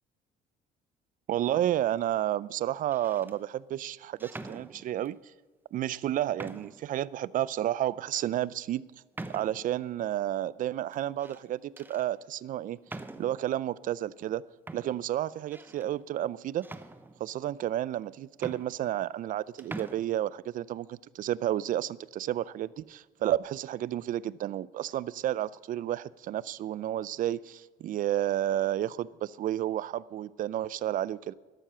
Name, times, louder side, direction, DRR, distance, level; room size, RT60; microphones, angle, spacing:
voice 1, 1.3-5.2 5.7-8.8 9.3-12.8 13.2-14.4 14.7-16.6 17.2-31.3, right 12 dB, 55° right, 0.4 m, -31 dB
sound 1, 1.5-2.0 2.8-3.4 4.2-5.2 5.8-5.9 6.4-6.9 7.4-7.5 8.1-8.3 9.1-9.8 10.9-11.4 11.8-12.1 12.9-13.5 14.3-14.4 14.7-15.9 16.6-17.5 18.0-18.1 18.3-19.3 19.6-20.0, right 2 dB, 10° right, 0.7 m, -44 dB
13.0 x 12.0 x 5.7 m
cardioid pair, 110°, 17 cm